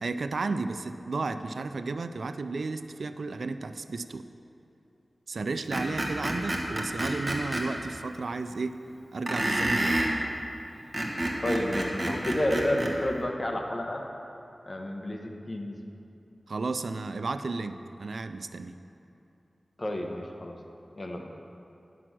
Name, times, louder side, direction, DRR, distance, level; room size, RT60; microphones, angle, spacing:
voice 1, 0.0-4.3 5.3-8.8 9.1-10.1 16.5-18.8, right 3 dB, 75° right, 10 dB, 0.3 m, -33 dB
Screech, 5.7-7.6 9.3-10.1 10.8-12.9, right 1 dB, 30° right, 1.3 m, -28 dB
voice 2, 11.4-14.0 14.7-15.8 19.8-20.6 21.0-21.2, left 1 dB, 40° left, 2 dB, 1.1 m, -30 dB
10.0 x 6.0 x 6.2 m, 2.8 s
wide cardioid pair, 90°, 0 cm